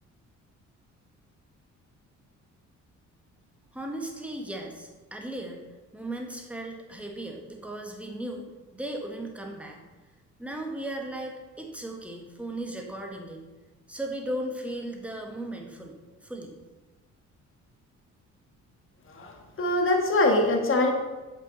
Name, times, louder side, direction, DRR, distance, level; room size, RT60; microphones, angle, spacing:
voice 1, 3.7-5.6 5.9-8.4 8.7-9.8 10.4-13.4 13.9-16.5, right 1 dB, 5° right, 1 dB, 1.4 m, -36 dB
voice 2, 19.1-20.9, left 2 dB, 45° left, 1 dB, 1.7 m, -23 dB
7.9 x 5.5 x 4.5 m, 1.2 s
cardioid pair, 90°, 30 cm